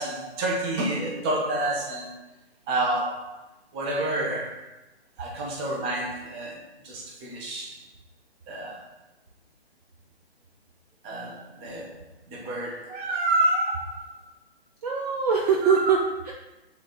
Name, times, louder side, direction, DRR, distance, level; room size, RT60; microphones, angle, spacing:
voice 1, 0.0-2.1 2.7-3.4 3.7-4.7 5.2-7.8 8.5-8.9 11.0-14.2 15.6-15.8, right 2 dB, 20° right, -2 dB, 1.1 m, -29 dB
voice 2, 14.8-16.3, right 6 dB, 35° right, -1 dB, 0.8 m, -23 dB
7.4 x 3.6 x 4.1 m, 0.98 s
hypercardioid pair, 145°, 32 cm